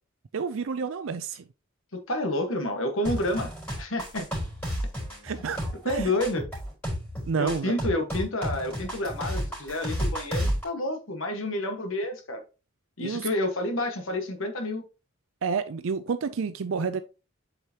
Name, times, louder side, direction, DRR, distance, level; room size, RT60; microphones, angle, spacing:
voice 1, 0.3-1.4 5.2-6.1 7.3-7.8 13.0-13.3 15.4-17.0, right 5 dB, 65° right, 0.4 m, -30 dB
voice 2, 1.9-3.5 3.8-4.3 5.4-5.5 5.8-6.4 7.4-12.4 13.0-14.8, left 1 dB, 70° left, 1.4 m, -29 dB
sound 1, 3.0-10.6, equal, 10° left, 4.0 m, -31 dB
7.9 x 4.9 x 2.8 m
head